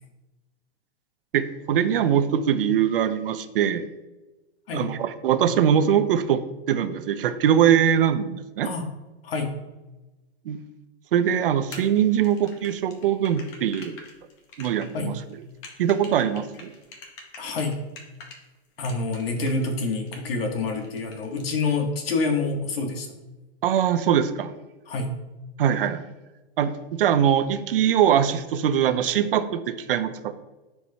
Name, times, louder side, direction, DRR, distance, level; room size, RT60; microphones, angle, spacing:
voice 1, 1.3-3.9 4.7-6.4 6.7-8.7 10.5-10.6 11.1-14.0 14.6-15.2 15.8-16.7 23.6-24.5 25.6-26.0 26.6-26.7 27.0-30.4, right 9 dB, 55° right, 11 dB, 0.6 m, -22 dB
voice 2, 9.2-9.5 14.9-15.1 17.4-17.8 18.8-23.1 24.9-25.1, left 3 dB, 60° left, 3 dB, 1.5 m, -27 dB
sound 1, 11.7-18.4 18.8-20.4 20.7-21.4, left 3 dB, 25° left, 0.9 m, -45 dB
10.0 x 4.7 x 2.8 m, 1.1 s
supercardioid pair, 170°, 33 cm